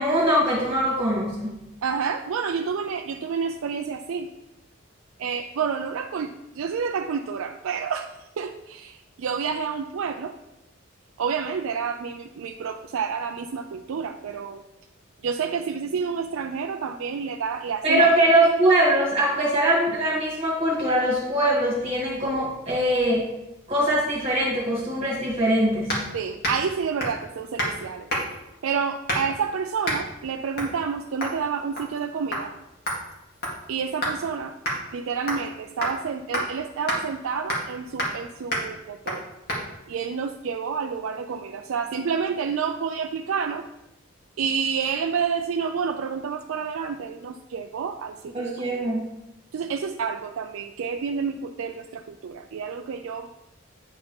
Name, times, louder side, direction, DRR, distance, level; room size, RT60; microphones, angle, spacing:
voice 1, 0.0-1.6 17.8-23.2 23.7-25.9 48.3-49.1, right 1 dB, 30° right, -5 dB, 1.8 m, -22 dB
voice 2, 1.8-4.3 5.2-10.3 11.2-14.6 15.2-18.1 26.1-28.1 28.6-32.5 33.7-34.6 34.9-39.2 39.9-43.6 44.4-48.8 49.5-53.3, right 6 dB, 75° right, 5 dB, 0.4 m, -29 dB
sound 1, 25.9-26.1 26.4-26.7 27.0-27.2 27.6-27.8 28.1-28.4 29.1-29.4 29.8-30.0 30.6-30.7 31.2-31.4 31.8-32.0 32.3-32.4 32.9-34.2 34.6-34.8 35.3-35.5 35.8-36.0 36.3-36.5 36.9-37.0 37.5-37.7 38.0-38.2 38.5-38.7 39.1-39.2 39.5-39.6, equal, 50° left, 2.1 m, -28 dB
9.1 x 4.0 x 5.2 m, 0.94 s
head